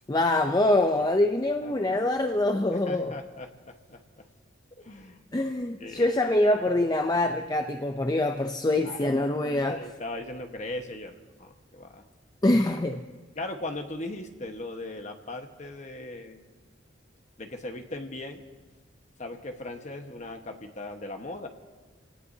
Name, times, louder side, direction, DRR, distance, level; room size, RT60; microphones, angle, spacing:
voice 1, 0.1-3.1 5.3-9.8 12.4-13.0, left 1 dB, 20° left, 6 dB, 0.5 m, -24 dB
voice 2, 2.8-4.3 4.8-5.2 5.8-6.1 8.8-9.0 9.7-12.0 13.3-16.4 17.4-18.4 19.2-21.5, left 2 dB, 35° left, 5 dB, 1.3 m, -38 dB
28.0 x 18.5 x 2.8 m, 1.4 s
head